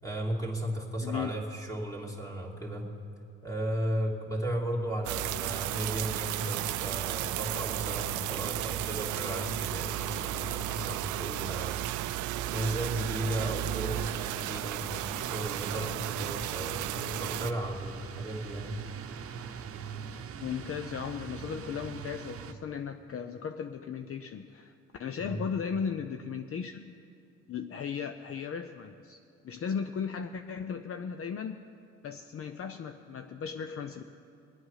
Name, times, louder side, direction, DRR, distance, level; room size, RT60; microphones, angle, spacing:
voice 1, 0.0-2.9 3.4-11.8 12.5-18.7 25.2-25.4, right 1 dB, 10° left, -1 dB, 2.6 m, -35 dB
voice 2, 1.0-1.4 20.4-24.7 25.0-26.9 27.5-29.2 29.4-31.6 32.0-34.0, left 7 dB, 50° left, 7 dB, 0.6 m, -36 dB
sound 1, 5.0-17.5, right 15 dB, 75° right, 0.4 m, -34 dB
sound 2, 14.9-22.5, right 6 dB, 50° right, 0.8 m, -43 dB
22.0 x 8.7 x 5.7 m, 2.5 s
cardioid pair, 90°, 30 cm